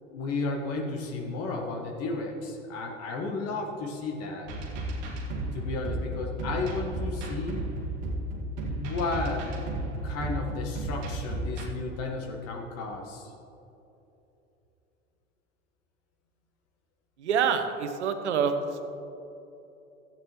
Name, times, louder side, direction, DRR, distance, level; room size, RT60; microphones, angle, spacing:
voice 1, 0.1-4.5 5.5-7.7 8.6-9.5 10.0-13.3, left 3 dB, 40° left, 1 dB, 1.5 m, -33 dB
sound 1, 4.5-11.7, right 1 dB, 45° right, 1.8 m, -33 dB
voice 2, 17.2-18.8, right 6 dB, 65° right, 8 dB, 0.9 m, -26 dB
15.5 x 8.6 x 3.1 m, 2.9 s
figure-of-eight pair, 75°, 37 cm